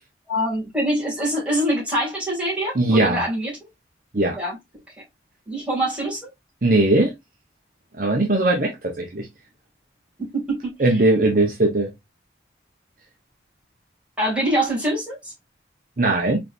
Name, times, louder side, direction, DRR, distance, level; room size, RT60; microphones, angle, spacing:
voice 1, 0.3-3.5 4.3-4.6 5.5-6.3 10.2-11.1 14.2-15.3, right 1 dB, 5° right, 2.4 m, -24 dB
voice 2, 2.7-3.2 4.1-4.4 6.6-7.1 8.0-8.7 9.0-9.3 10.8-11.9 16.0-16.4, right 2 dB, 50° right, 0.8 m, -19 dB
4.4 x 3.3 x 2.5 m
head